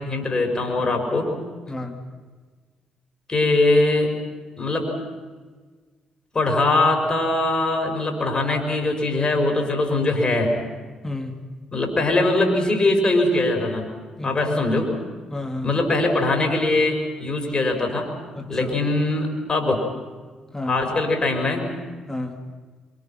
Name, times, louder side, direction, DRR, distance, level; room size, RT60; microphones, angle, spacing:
voice 1, 0.0-1.4 3.3-4.1 4.6-4.9 6.3-10.5 11.7-13.9 14.2-14.9 15.6-18.1 18.5-19.9 20.7-21.7, left 2 dB, 30° left, 3 dB, 5.9 m, -21 dB
voice 2, 1.7-2.0 11.0-11.5 14.2-14.4 15.3-15.8 18.3-18.7 20.5-20.8 22.1-22.5, left 2 dB, 15° left, 4 dB, 2.8 m, -31 dB
27.5 x 24.5 x 6.0 m, 1.4 s
figure-of-eight pair, 40°, 3 cm